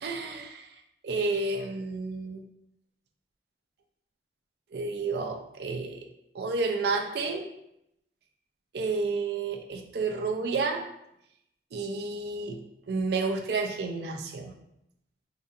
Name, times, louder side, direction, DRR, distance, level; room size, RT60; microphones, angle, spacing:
voice 1, 0.0-0.7 1.0-2.4 4.7-6.1 6.3-7.5 8.7-10.9 11.7-12.6 12.9-14.5, right 3 dB, 65° right, 4 dB, 0.4 m, -30 dB
3.9 x 2.4 x 2.5 m, 0.79 s
head